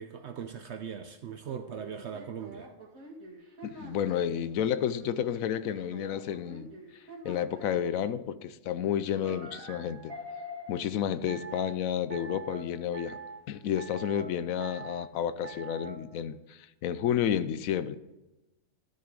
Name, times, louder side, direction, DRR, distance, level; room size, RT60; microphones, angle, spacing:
voice 1, 0.0-2.7, right 7 dB, 60° right, 8 dB, 0.8 m, -40 dB
sound 1, 1.5-4.4 5.0-7.9 9.2-10.8 11.3-11.7 12.1-12.6 12.9-13.4 13.8-14.3 14.6-15.1 15.4-16.0, right 2 dB, 85° right, 2.5 m, -44 dB
voice 2, 3.6-6.7 7.2-10.1 10.7-13.2 13.5-18.0, left 9 dB, 90° left, 14 dB, 1.0 m, -31 dB
12.5 x 6.8 x 3.9 m, 1.0 s
omnidirectional pair, 1.4 m